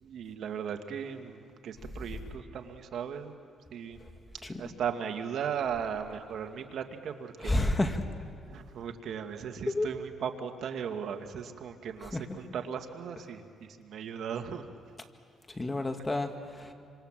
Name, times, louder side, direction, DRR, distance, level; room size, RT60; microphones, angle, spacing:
voice 1, 0.0-3.3 3.7-4.0 4.6-7.5 8.5-14.7, right 7 dB, 70° right, 6 dB, 2.0 m, -37 dB
voice 2, 7.4-8.1 9.7-9.9 12.1-12.4 15.6-16.7, left 2 dB, 20° left, 6 dB, 2.1 m, -30 dB
27.0 x 26.5 x 7.6 m, 2.2 s
cardioid pair, 90°, 0 cm